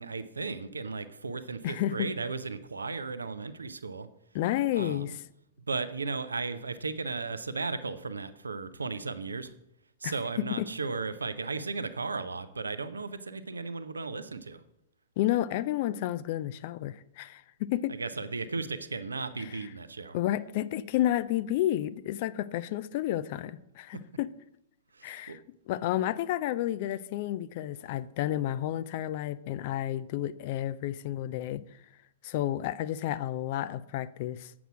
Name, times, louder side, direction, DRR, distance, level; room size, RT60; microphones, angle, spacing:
voice 1, 0.0-4.1 4.8-5.2 5.6-9.5 10.0-14.6 17.9-20.2 24.9-25.4, right 4 dB, 75° right, 0.7 m, -35 dB
voice 2, 1.6-2.1 4.3-5.2 10.0-10.1 10.6-10.7 15.2-18.0 19.4-19.6 20.1-24.3 25.0-25.4 25.7-31.6 32.2-34.5, left 13 dB, 45° left, 0.4 m, -31 dB
7.9 x 6.0 x 6.2 m
figure-of-eight pair, 105°, 0 cm